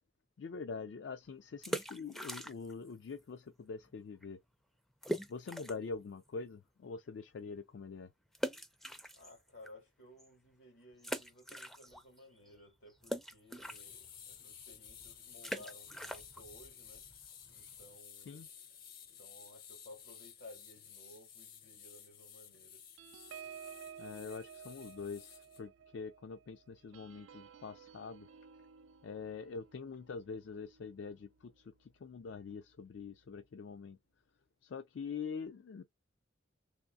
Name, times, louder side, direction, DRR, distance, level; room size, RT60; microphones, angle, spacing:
voice 1, 0.4-4.4 5.3-8.1 18.3-18.5 24.0-28.3 29.0-34.0 34.6-35.8, left 5 dB, 70° left, 0.4 m, -44 dB
sound 1, 1.5-2.9 3.1-3.2 3.8-3.9 4.2-4.3 5.0-5.9 6.4-6.5 8.3-9.7 10.2-10.3 11.0-12.2 12.5-18.0, equal, ahead, 0.4 m, -42 dB
voice 2, 9.1-17.1 17.5-18.8 19.2-22.9 23.3-23.5, left 1 dB, 90° left, 2.3 m, -57 dB
sound 2, 13.6-25.6, left 8 dB, 50° left, 0.7 m, -54 dB
sound 3, 23.0-31.9 32.3-32.5 32.8-33.1, right 7 dB, 85° right, 0.3 m, -54 dB
3.6 x 2.9 x 2.6 m
head